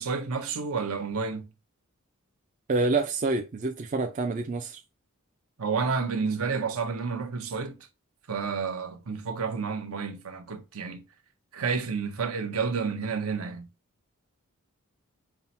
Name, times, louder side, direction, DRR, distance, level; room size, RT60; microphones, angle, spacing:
voice 1, 0.0-1.5 5.6-7.8 8.3-11.0 11.5-13.7, right 5 dB, 70° right, 0.7 m, -30 dB
voice 2, 2.7-4.8, right 3 dB, 35° right, 0.4 m, -27 dB
5.5 x 2.0 x 4.1 m
head